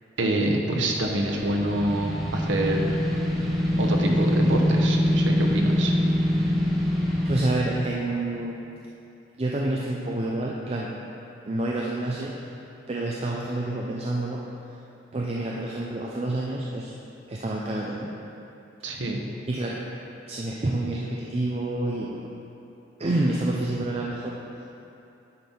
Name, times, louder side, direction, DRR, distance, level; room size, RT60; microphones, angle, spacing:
voice 1, 0.2-3.0 3.8-5.9 18.8-19.2, right 1 dB, 85° right, 0 dB, 1.0 m, -26 dB
sound 1, 1.2-7.5, equal, ahead, 1.0 m, -24 dB
voice 2, 7.2-8.6 9.4-10.9 11.5-12.3 12.9-14.4 15.1-16.9 17.3-18.1 19.5-19.8 20.3-22.3 23.0-24.4, right 2 dB, 35° right, -3 dB, 0.5 m, -28 dB
9.5 x 5.4 x 4.3 m, 2.7 s
head